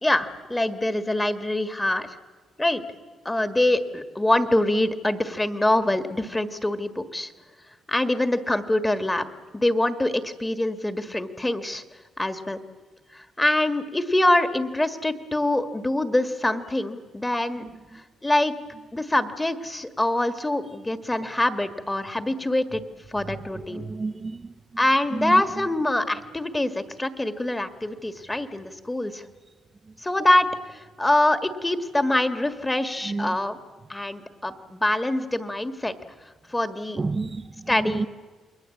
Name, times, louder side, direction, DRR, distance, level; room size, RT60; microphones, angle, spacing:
voice 1, 0.0-2.2 2.6-2.8 3.3-7.3 7.9-9.3 9.5-11.8 12.2-12.6 13.1-17.6 17.9-18.5 18.9-22.8 23.1-23.8 24.8-29.2 30.0-33.6 33.9-35.9 36.5-37.0 37.7-38.1, left 1 dB, 15° left, 1.7 m, -24 dB
voice 2, 17.6-18.0 23.2-24.5 25.1-25.4 33.0-33.4 37.0-38.1, right 3 dB, 30° right, 0.9 m, -31 dB
28.5 x 21.0 x 8.6 m
cardioid pair, 90°, 0 cm